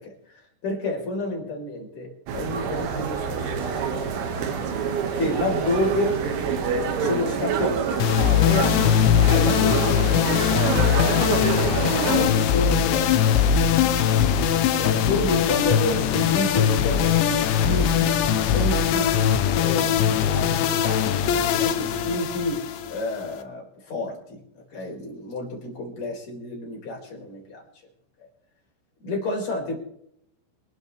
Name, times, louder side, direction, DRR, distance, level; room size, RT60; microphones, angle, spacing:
voice 1, 0.0-4.2 4.5-4.8 5.1-6.2 7.0-7.8 8.3-11.0 11.4-13.6 14.5-24.4 24.7-27.6 29.0-29.8, left 1 dB, 35° left, -1 dB, 5.2 m, -30 dB
sound 1, 2.3-12.3, right 6 dB, 85° right, 4.6 m, -27 dB
sound 2, 3.6-18.7, right 5 dB, 40° right, 2.8 m, -41 dB
sound 3, 8.0-23.4, left 9 dB, 75° left, 2.9 m, -21 dB
25.5 x 12.0 x 3.4 m, 0.71 s
omnidirectional pair, 6.0 m